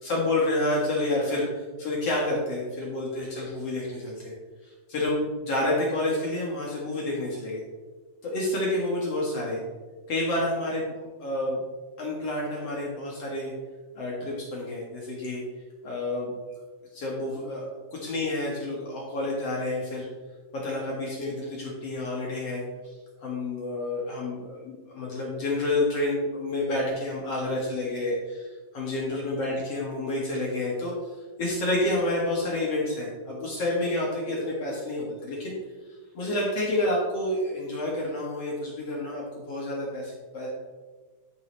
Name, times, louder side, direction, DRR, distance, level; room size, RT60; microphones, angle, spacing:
voice 1, 0.0-4.3 4.9-7.6 8.2-9.6 10.1-10.9 11.2-11.6 12.0-13.5 14.0-15.4 15.8-16.3 16.9-20.1 20.5-22.9 23.2-28.5 28.7-30.9 31.4-35.6 36.1-40.5, left 1 dB, 50° left, -4 dB, 2.0 m, -29 dB
13.0 x 5.6 x 3.2 m, 1.3 s
omnidirectional pair, 4.4 m